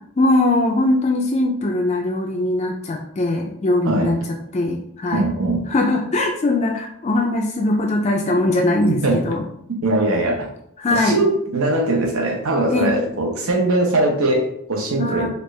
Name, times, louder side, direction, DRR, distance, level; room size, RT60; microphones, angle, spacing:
voice 1, 0.2-4.2 4.5-5.2 5.7-9.4 10.8-11.3 12.7-13.0 15.0-15.3, left 2 dB, 30° left, 1 dB, 0.3 m, -20 dB
voice 2, 5.1-5.6 8.9-9.2 9.8-10.5 10.9-15.3, right 2 dB, 80° right, 2 dB, 0.8 m, -20 dB
4.4 x 2.4 x 3.2 m, 0.72 s
head